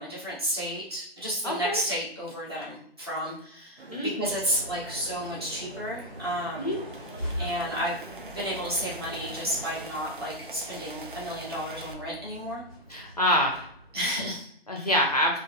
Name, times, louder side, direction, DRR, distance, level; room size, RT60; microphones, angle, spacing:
voice 1, 0.0-6.7 7.4-7.9 8.3-12.6 13.9-14.9, equal, 25° right, -6 dB, 0.9 m, -32 dB
voice 2, 1.4-1.8 3.9-4.1 6.6-6.8 12.9-13.7 14.7-15.4, equal, 40° left, 0 dB, 0.5 m, -25 dB
sound 1, 3.8-9.9, right 2 dB, 80° right, 0.8 m, -46 dB
sound 2, 4.2-14.4, equal, 10° left, 0.8 m, -43 dB
sound 3, 6.4-11.9, right 3 dB, 55° right, 0.5 m, -44 dB
4.0 x 2.5 x 2.3 m, 0.63 s
figure-of-eight pair, 165°, 31 cm